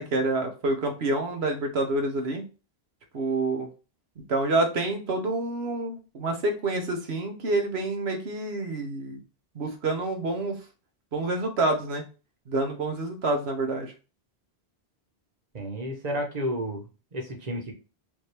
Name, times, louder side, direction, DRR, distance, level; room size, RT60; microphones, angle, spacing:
voice 1, 0.0-2.4 3.1-3.7 4.3-9.2 9.5-10.6 11.1-12.0 12.5-13.9, right 2 dB, 90° right, 3 dB, 1.3 m, -27 dB
voice 2, 15.5-17.7, equal, 40° right, 1 dB, 1.1 m, -32 dB
5.1 x 2.8 x 3.3 m, 0.33 s
omnidirectional pair, 1.0 m